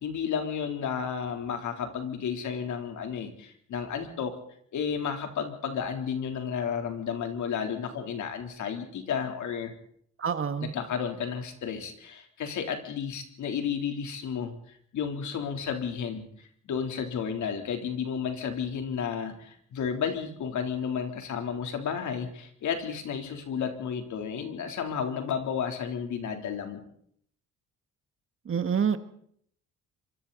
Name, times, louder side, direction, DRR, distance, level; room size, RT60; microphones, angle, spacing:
voice 1, 0.0-4.3 4.7-9.7 10.6-26.8, left 7 dB, 70° left, 4 dB, 3.6 m, -32 dB
voice 2, 10.2-10.7 28.5-29.0, right 7 dB, 45° right, 9 dB, 1.8 m, -27 dB
26.0 x 23.5 x 4.2 m, 0.66 s
cardioid pair, 90°, 30 cm